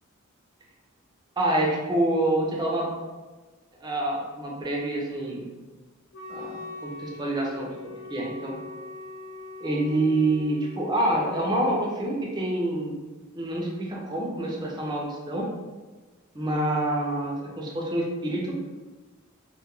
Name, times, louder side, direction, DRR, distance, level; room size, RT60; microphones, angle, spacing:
voice 1, 1.4-2.9 3.8-5.4 6.3-6.6 6.8-8.6 9.6-13.0 13.3-15.5 16.3-18.6, right 1 dB, 20° right, -2 dB, 0.4 m, -27 dB
Wind instrument woodwind instrument, 6.1-12.0, left 3 dB, 60° left, 0.3 m, -42 dB
2.2 x 2.2 x 2.9 m, 1.3 s
head